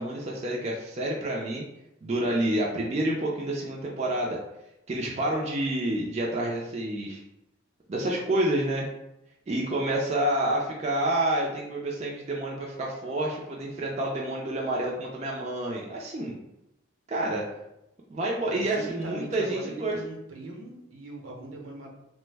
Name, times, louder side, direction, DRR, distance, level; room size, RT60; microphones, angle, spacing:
voice 1, 0.0-1.6 2.0-4.4 4.9-7.2 7.9-8.9 9.5-16.4 17.1-17.5 18.1-20.0, right 1 dB, 35° right, -3 dB, 0.4 m, -28 dB
voice 2, 18.4-21.9, right 1 dB, 80° right, -1 dB, 0.8 m, -40 dB
3.0 x 2.0 x 3.3 m, 0.85 s
head